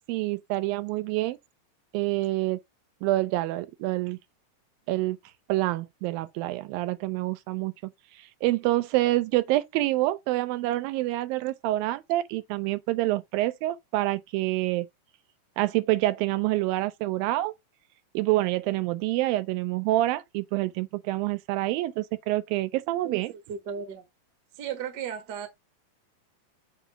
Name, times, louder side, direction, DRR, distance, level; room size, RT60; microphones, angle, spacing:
voice 1, 0.1-1.4 1.9-2.6 3.0-4.2 4.9-5.2 5.5-7.7 8.4-14.9 15.6-17.5 18.1-23.3, right 17 dB, 85° right, 2.3 m, -27 dB
voice 2, 23.0-24.0 24.6-25.5, right 8 dB, 55° right, 1.1 m, -35 dB
7.0 x 2.8 x 5.7 m
omnidirectional pair, 4.2 m